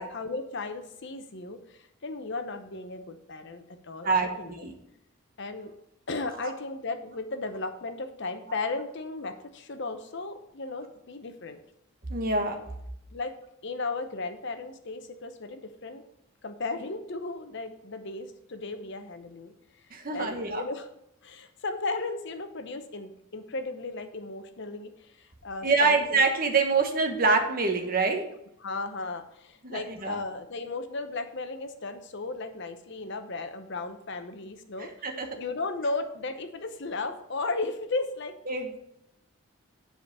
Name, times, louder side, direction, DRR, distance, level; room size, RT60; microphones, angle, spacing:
voice 1, 0.0-4.6 5.4-5.7 6.1-11.6 13.1-13.3 13.6-16.0 16.4-19.5 20.1-20.9 21.2-26.2 28.6-35.1 35.4-38.4, left 3 dB, 55° left, 8 dB, 0.8 m, -35 dB
voice 2, 4.0-4.7 6.4-6.5 12.1-12.6 19.9-20.6 25.6-28.2 29.6-30.2 35.0-35.3 38.5-38.8, right 4 dB, 40° right, 3 dB, 1.3 m, -25 dB
7.6 x 5.1 x 6.8 m, 0.77 s
head